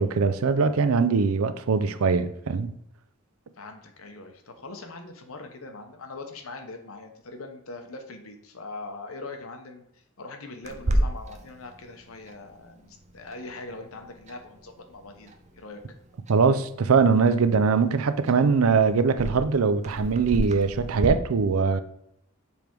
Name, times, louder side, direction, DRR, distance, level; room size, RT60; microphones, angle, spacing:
voice 1, 0.0-2.7 16.3-21.8, right 5 dB, 85° right, 0.5 m, -22 dB
voice 2, 3.6-15.8, left 3 dB, 80° left, 0.9 m, -42 dB
Clock, 10.6-21.1, right 1 dB, 35° right, 0.6 m, -34 dB
7.0 x 3.5 x 4.5 m
head